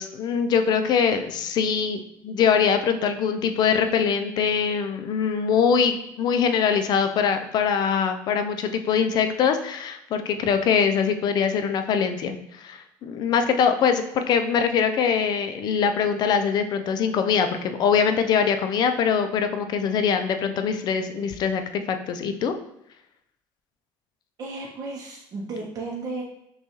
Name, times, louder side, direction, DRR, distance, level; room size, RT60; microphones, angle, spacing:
voice 1, 0.0-21.6 21.9-22.5, left 6 dB, 50° left, 7 dB, 0.4 m, -23 dB
voice 2, 24.4-26.2, right 3 dB, 40° right, -3 dB, 0.6 m, -34 dB
5.4 x 2.3 x 3.0 m, 0.81 s
cardioid pair, 140°, 9 cm